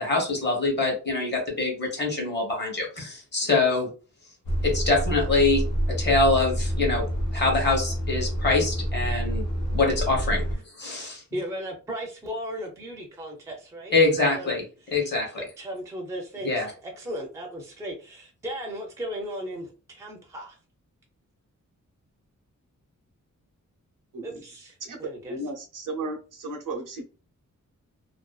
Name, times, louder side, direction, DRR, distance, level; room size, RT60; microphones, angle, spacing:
voice 1, 0.0-3.9 4.6-5.6 5.9-7.0 7.3-10.4 10.8-11.2 13.9-14.6 14.9-15.4 16.4-16.7, left 3 dB, 35° left, 1 dB, 0.8 m, -24 dB
Truck, 4.4-10.6, equal, 90° left, 0.9 m, -28 dB
voice 2, 11.3-13.9 14.3-14.6 14.8-15.1 15.3-20.6 24.2-25.4, equal, 10° right, 1 dB, 0.4 m, -36 dB
voice 3, 25.3-27.0, right 2 dB, 80° right, 2 dB, 0.7 m, -34 dB
2.5 x 2.2 x 2.2 m, 0.34 s
wide cardioid pair, 180°, 31 cm